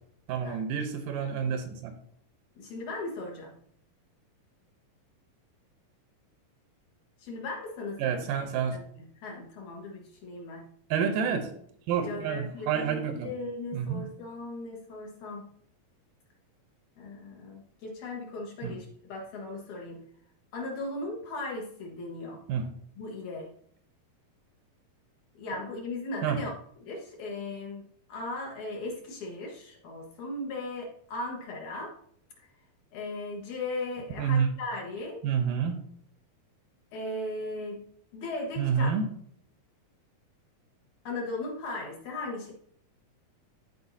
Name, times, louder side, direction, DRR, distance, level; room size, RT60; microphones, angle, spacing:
voice 1, 0.3-1.9 8.0-8.8 10.9-11.5 11.9-13.3 13.7-14.1 18.6-18.8 22.5-22.7 26.2-26.4 34.2-34.5 35.2-35.8 38.6-39.1, right 7 dB, 80° right, 7 dB, 2.3 m, -28 dB
voice 2, 2.6-3.6 7.2-8.3 8.7-10.7 12.0-15.5 17.0-20.0 20.5-22.4 23.0-23.5 25.4-26.5 26.8-32.0 32.4-32.5 32.9-35.2 36.9-37.9 38.1-38.9 41.0-42.5, left 2 dB, 65° left, -1 dB, 2.6 m, -37 dB
13.5 x 4.6 x 2.7 m, 0.64 s
omnidirectional pair, 4.0 m